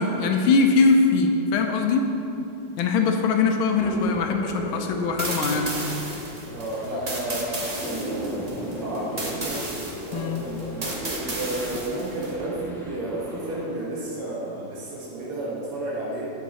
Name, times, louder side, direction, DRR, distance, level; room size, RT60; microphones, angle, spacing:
voice 1, 0.0-2.1 2.8-5.8 10.1-10.4, left 4 dB, 75° left, 4 dB, 1.4 m, -21 dB
sound 1, 3.8-13.7, equal, ahead, 0.6 m, -36 dB
sound 2, 5.2-12.3, right 2 dB, 45° right, 0.5 m, -34 dB
voice 2, 6.5-8.4 8.7-9.6 10.0-16.3, right 1 dB, 85° right, -6 dB, 2.3 m, -32 dB
8.6 x 7.0 x 4.3 m, 2.8 s
omnidirectional pair, 2.4 m